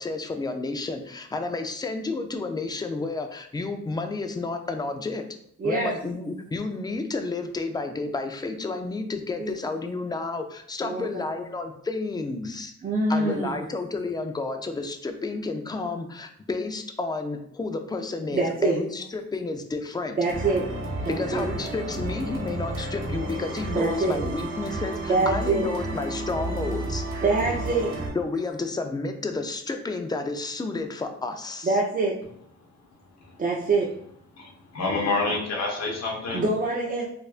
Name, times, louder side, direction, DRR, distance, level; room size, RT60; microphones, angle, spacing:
voice 1, 0.0-5.2 5.6-12.7 13.1-20.2 21.1-27.0 28.1-31.8, left 3 dB, 15° left, 6 dB, 0.4 m, -31 dB
voice 2, 5.6-5.9 9.4-9.5 10.8-11.2 12.8-13.5 18.3-18.8 20.2-20.7 21.0-21.5 23.7-24.2 25.1-25.7 27.2-27.9 31.6-32.2 33.4-33.9 36.3-37.0, right 3 dB, 30° right, -3 dB, 0.6 m, -24 dB
sound 1, 20.3-28.1, right 2 dB, 75° right, 1.3 m, -32 dB
voice 3, 34.4-36.4, left 3 dB, 60° left, -1 dB, 1.2 m, -28 dB
4.3 x 2.5 x 2.4 m, 0.67 s
cardioid pair, 90°, 30 cm